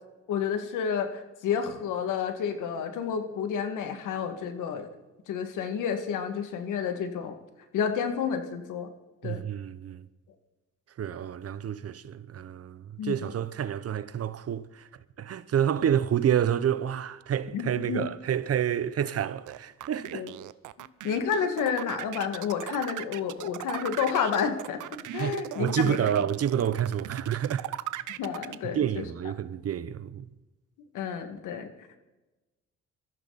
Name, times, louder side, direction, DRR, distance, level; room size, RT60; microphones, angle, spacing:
voice 1, 0.3-4.9 5.3-7.3 7.7-8.9 9.2-9.4 13.0-13.3 17.5-18.0 20.1-20.3 21.0-26.0 28.2-29.1 30.9-31.7, left 7 dB, 85° left, 2.2 m, -30 dB
voice 2, 9.2-10.1 11.0-14.9 15.2-20.3 25.1-27.7 28.7-30.3, right 9 dB, 50° right, 0.9 m, -29 dB
sound 1, 19.5-28.5, right 14 dB, 80° right, 0.7 m, -37 dB
23.5 x 14.5 x 4.2 m
cardioid pair, 90°, 30 cm